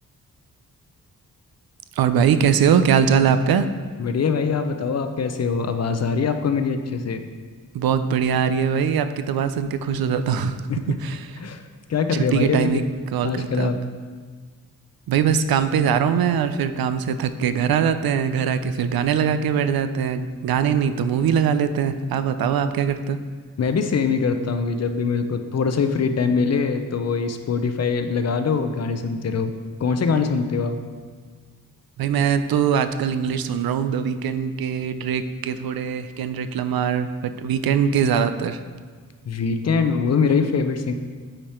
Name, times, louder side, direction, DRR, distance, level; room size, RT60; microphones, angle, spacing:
voice 1, 2.0-3.7 7.7-10.6 10.9-11.4 12.1-12.8 13.1-13.7 15.1-23.2 32.0-38.6, right 7 dB, 90° right, 11 dB, 0.5 m, -22 dB
voice 2, 4.0-7.2 10.7-10.9 11.4-11.6 11.9-12.8 13.2-13.8 23.6-29.5 29.8-30.8 39.3-40.9, left 5 dB, 45° left, 8 dB, 0.6 m, -23 dB
9.0 x 4.9 x 4.3 m, 1.5 s
wide cardioid pair, 150°, 35 cm